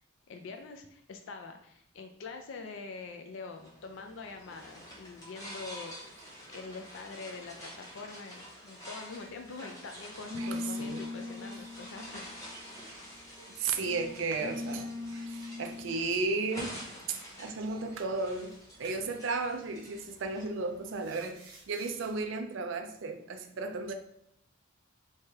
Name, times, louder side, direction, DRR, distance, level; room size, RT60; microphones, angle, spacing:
voice 1, 0.3-12.8, left 4 dB, 60° left, 5 dB, 0.4 m, -45 dB
sound 1, 3.5-21.0, equal, 15° left, 0.7 m, -48 dB
sound 2, 10.3-13.1 13.8-15.9 18.8-19.0 20.2-20.5 21.0-22.0, left 2 dB, 40° right, 0.9 m, -41 dB
voice 2, 10.4-11.0 12.8-12.9 13.6-16.8 17.1-18.5 18.8-23.9, right 3 dB, 60° right, 6 dB, 0.4 m, -34 dB
3.3 x 3.2 x 2.8 m, 0.76 s
head